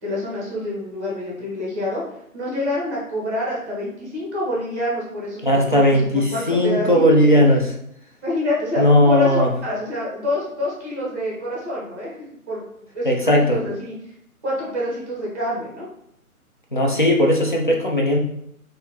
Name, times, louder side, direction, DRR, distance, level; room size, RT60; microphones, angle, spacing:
voice 1, 0.0-2.0 2.3-7.0 7.3-7.4 8.2-12.2 12.5-12.6 12.9-13.9 14.4-15.9, left 1 dB, 10° right, -5 dB, 0.7 m, -27 dB
voice 2, 5.4-7.7 8.8-9.5 13.0-13.6 16.7-18.2, left 1 dB, 35° left, -1 dB, 0.5 m, -17 dB
4.0 x 2.5 x 2.8 m, 0.75 s
figure-of-eight pair, 155°, 44 cm